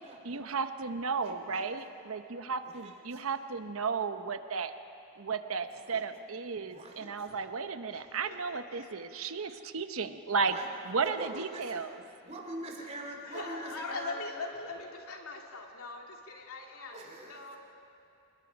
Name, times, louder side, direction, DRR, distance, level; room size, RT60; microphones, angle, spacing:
voice 1, 0.2-4.7 5.2-10.5 10.8-12.0, right 5 dB, 75° right, 9 dB, 0.9 m, -34 dB
voice 2, 1.2-1.7 2.7-3.2 5.8-6.0 6.6-7.1 10.4-10.7 11.0-11.8 12.2-14.2 16.9-17.6, right 1 dB, 30° right, 1 dB, 2.6 m, -43 dB
voice 3, 7.9-8.9 13.2-17.6, left 3 dB, 85° left, 1 dB, 2.6 m, -42 dB
28.0 x 21.0 x 5.2 m, 2.7 s
head